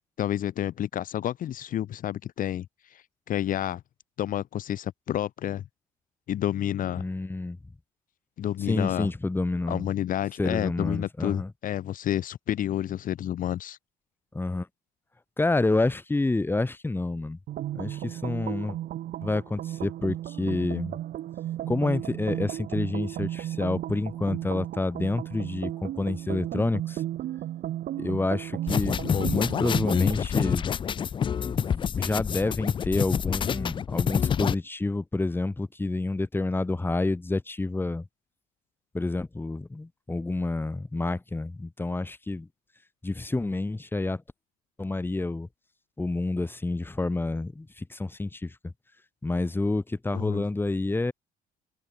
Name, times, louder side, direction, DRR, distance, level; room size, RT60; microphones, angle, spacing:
voice 1, 0.2-3.8 4.2-5.6 6.3-7.0 8.4-9.1 9.7-13.8 50.1-50.4, left 11 dB, 55° left, 0.9 m, -30 dB
voice 2, 7.0-7.6 8.7-9.9 10.4-11.5 14.3-14.7 15.4-17.4 17.7-18.8 19.2-21.0 21.7-27.0 28.0-30.7 31.4-38.1 38.9-42.5 43.0-44.2 44.8-45.5 46.0-48.7 49.2-51.1, left 2 dB, 10° left, 2.0 m, -28 dB
sound 1, 17.5-30.2, right 12 dB, 60° right, 1.5 m, -34 dB
sound 2, 28.7-34.5, left 7 dB, 30° left, 0.4 m, -27 dB
cardioid pair, 110°, 17 cm